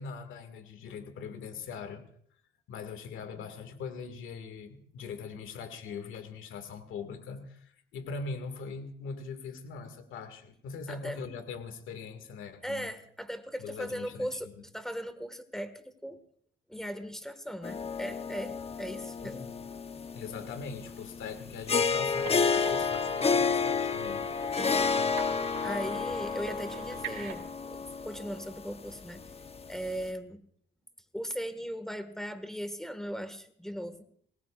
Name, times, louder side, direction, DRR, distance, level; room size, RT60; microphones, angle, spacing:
voice 1, 0.0-2.0 2.7-12.9 13.6-14.5 19.2-19.5 19.9-24.3, left 5 dB, 80° left, 8 dB, 2.1 m, -41 dB
voice 2, 10.9-11.2 12.6-16.2 16.7-19.5 24.6-25.0 25.3-29.2 29.7-30.4 31.1-34.0, equal, ahead, 10 dB, 1.8 m, -38 dB
sound 1, 17.6-30.1, left 5 dB, 30° left, 0.9 m, -31 dB
sound 2, 22.1-27.3, right 7 dB, 75° right, 3.7 m, -44 dB
26.0 x 18.5 x 2.5 m, 0.62 s
cardioid pair, 90°, 20 cm